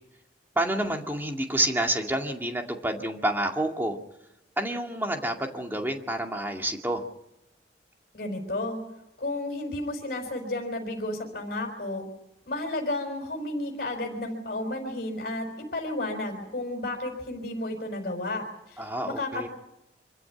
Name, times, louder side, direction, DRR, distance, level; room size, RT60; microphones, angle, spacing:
voice 1, 0.6-4.0 4.6-7.0 18.8-19.5, right 1 dB, 10° right, 3 dB, 2.2 m, -28 dB
voice 2, 8.1-8.8 9.2-12.0 12.5-15.5 15.7-19.5, left 2 dB, 50° left, 1 dB, 5.0 m, -32 dB
25.5 x 14.5 x 9.8 m, 0.90 s
head